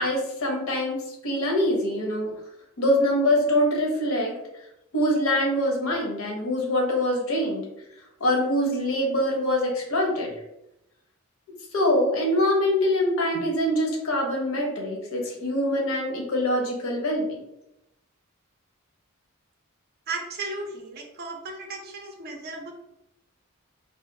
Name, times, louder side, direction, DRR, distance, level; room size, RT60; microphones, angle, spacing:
voice 1, 0.0-2.3 2.8-4.3 4.9-7.6 8.2-10.3 11.7-17.4, left 1 dB, 70° left, 0 dB, 0.7 m, -24 dB
voice 2, 20.1-22.7, right 3 dB, 45° right, 2 dB, 0.4 m, -35 dB
2.4 x 2.3 x 2.6 m, 0.86 s
head